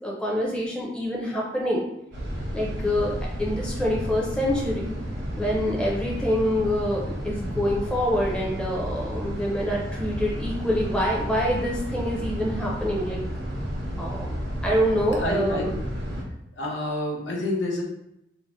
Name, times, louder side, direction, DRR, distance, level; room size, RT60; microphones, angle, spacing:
voice 1, 0.0-1.8 2.5-3.1 3.4-5.0 5.3-13.2 14.0-14.3 14.6-15.7, equal, 5° left, -4 dB, 0.5 m, -26 dB
sound 1, 2.1-16.2, equal, 65° right, 0.8 m, -32 dB
voice 2, 15.2-15.8 16.6-17.8, left 1 dB, 85° left, -2 dB, 0.8 m, -28 dB
2.7 x 2.0 x 3.4 m, 0.84 s
head